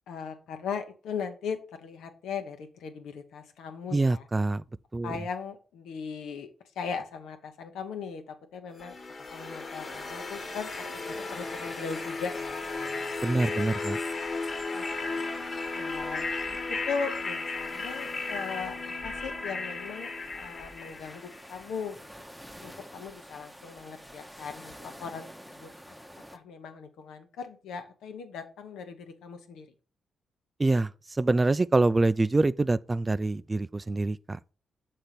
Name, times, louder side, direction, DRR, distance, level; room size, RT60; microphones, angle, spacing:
voice 1, 0.1-4.3 5.0-6.5 6.8-9.0 9.3-10.7 11.1-13.2 14.7-15.2 15.7-18.8 19.0-22.0 22.6-25.9 26.3-29.7, left 6 dB, 85° left, 0.9 m, -39 dB
voice 2, 3.9-4.6 4.9-5.1 13.2-14.0 30.6-30.9 31.2-34.4, right 2 dB, 30° right, 0.3 m, -25 dB
sound 1, 8.8-21.7, left 3 dB, 50° left, 1.3 m, -35 dB
sound 2, 9.8-26.4, equal, ahead, 0.9 m, -49 dB
6.6 x 3.4 x 5.7 m
supercardioid pair, 55°, 0 cm